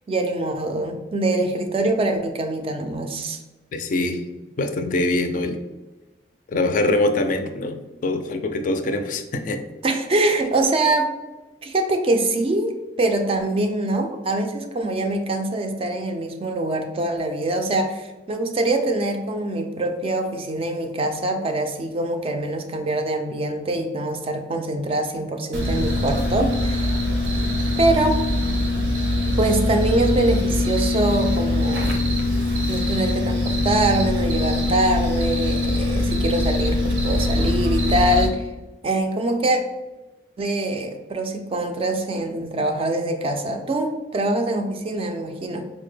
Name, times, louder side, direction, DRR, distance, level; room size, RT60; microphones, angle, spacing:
voice 1, 0.1-3.4 9.8-11.1 11.6-26.9 27.8-28.2 29.4-32.0 32.7-38.5 38.8-39.6 40.4-45.6, right 2 dB, 30° right, 5 dB, 0.4 m, -24 dB
voice 2, 3.7-4.2 4.6-5.6 6.5-9.6, left 2 dB, 45° left, 7 dB, 0.3 m, -23 dB
sound 1, 25.5-38.3, left 1 dB, 75° right, 0.7 m, -22 dB
4.3 x 2.1 x 3.2 m, 1.1 s
head